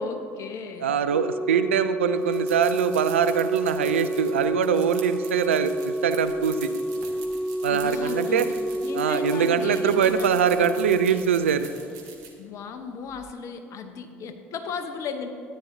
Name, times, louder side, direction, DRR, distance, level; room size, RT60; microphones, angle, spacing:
voice 1, 0.0-0.9 7.7-8.5 8.8-10.4 12.4-15.3, left 5 dB, 50° left, 7 dB, 0.9 m, -35 dB
voice 2, 0.8-6.7 7.6-8.5 8.9-11.7, right 7 dB, 80° right, 11 dB, 0.4 m, -23 dB
Organ, 1.1-12.0 13.1-13.3, right 1 dB, 5° left, 0.4 m, -29 dB
sound 1, 2.2-12.3, right 6 dB, 60° right, 1.4 m, -45 dB
13.5 x 9.6 x 2.7 m, 2.4 s
figure-of-eight pair, 60°, 7 cm